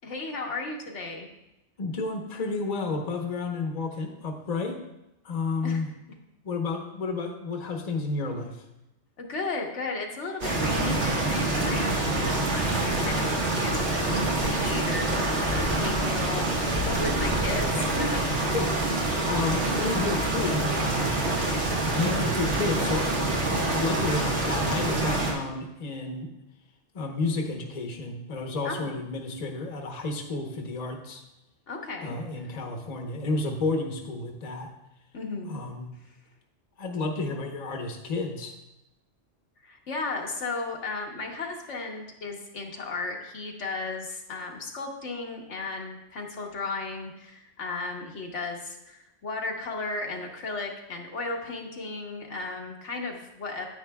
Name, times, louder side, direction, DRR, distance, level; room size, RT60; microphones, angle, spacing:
voice 1, 0.0-1.3 5.6-5.8 9.2-18.5 28.6-29.0 31.7-32.1 35.1-35.6 39.6-53.7, left 3 dB, 80° left, 0 dB, 1.4 m, -35 dB
voice 2, 1.8-4.8 5.2-5.9 6.4-8.6 18.5-18.7 19.2-21.2 21.9-23.1 23.6-26.3 26.9-31.2 32.0-34.7 35.4-35.9 36.8-38.6, left 3 dB, 40° left, 2 dB, 1.0 m, -31 dB
sound 1, 10.4-25.3, right 2 dB, 75° right, 1.8 m, -26 dB
9.6 x 9.3 x 2.3 m, 0.89 s
omnidirectional pair, 1.2 m